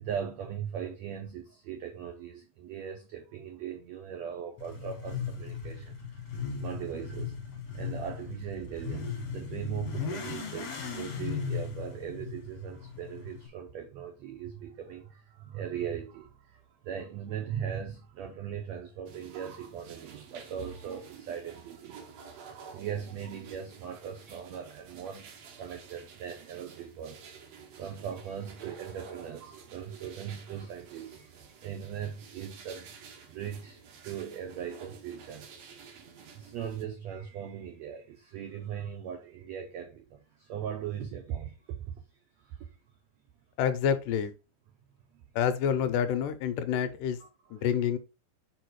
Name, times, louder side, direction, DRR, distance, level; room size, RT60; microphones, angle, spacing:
voice 1, 0.0-7.4 7.7-27.2 27.8-35.5 36.3-42.0 42.4-42.7 47.2-47.7, right 8 dB, 90° right, 1.5 m, -39 dB
Motorcycle / Accelerating revving vroom, 4.6-13.5, left 6 dB, 55° left, 2.2 m, -37 dB
sound 1, 19.1-36.8, right 6 dB, 65° right, 1.7 m, -51 dB
voice 2, 43.6-44.3 45.4-47.2 47.5-48.0, left 8 dB, 80° left, 2.1 m, -28 dB
4.9 x 4.9 x 4.6 m
omnidirectional pair, 4.1 m